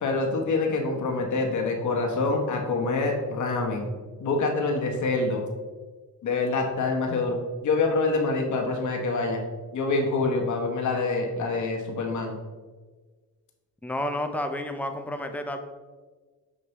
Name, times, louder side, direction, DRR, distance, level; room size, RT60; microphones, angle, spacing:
voice 1, 0.0-3.9 4.2-5.4 6.2-9.4 9.7-12.3, left 3 dB, 55° left, 2 dB, 1.1 m, -26 dB
voice 2, 13.8-15.6, left 1 dB, 5° left, 6 dB, 0.4 m, -30 dB
6.4 x 5.1 x 3.0 m, 1.4 s
cardioid pair, 135°, 36 cm